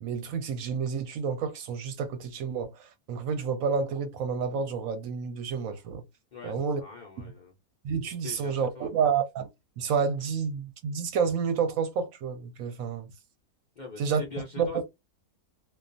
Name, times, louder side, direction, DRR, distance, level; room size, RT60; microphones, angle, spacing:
voice 1, 0.0-6.0 6.4-6.8 7.2-7.3 7.8-9.5 9.8-13.1 14.0-14.2 14.6-14.7, right 6 dB, 70° right, 0.9 m, -29 dB
voice 2, 6.3-7.5 8.2-8.9 13.8-14.8, left 4 dB, 75° left, 0.4 m, -42 dB
2.3 x 2.3 x 2.5 m
omnidirectional pair, 1.6 m